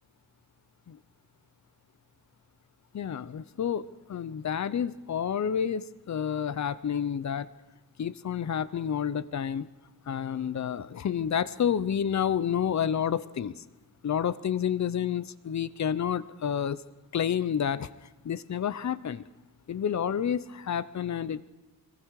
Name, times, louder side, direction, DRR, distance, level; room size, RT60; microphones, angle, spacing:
voice 1, 2.9-3.8 4.1-7.5 8.0-9.7 10.1-13.6 14.0-16.8 17.1-17.9 18.2-19.2 19.7-21.4, left 8 dB, 50° left, 16 dB, 0.7 m, -29 dB
25.0 x 22.0 x 4.8 m, 1.1 s
wide cardioid pair, 170°, 35 cm